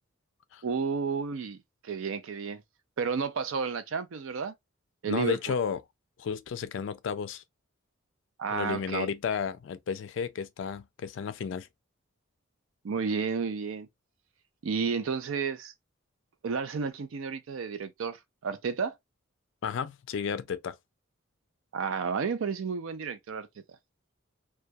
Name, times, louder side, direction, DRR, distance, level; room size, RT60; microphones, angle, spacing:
voice 1, 0.6-1.6 1.8-2.6 3.0-4.5 5.0-5.4 8.4-9.1 12.8-13.9 14.6-15.7 16.4-18.9 21.7-23.5, right 5 dB, 75° right, 0.4 m, -31 dB
voice 2, 5.0-5.8 6.2-7.4 8.5-11.7 19.6-20.8, left 6 dB, 65° left, 0.3 m, -32 dB
2.3 x 2.2 x 2.5 m
head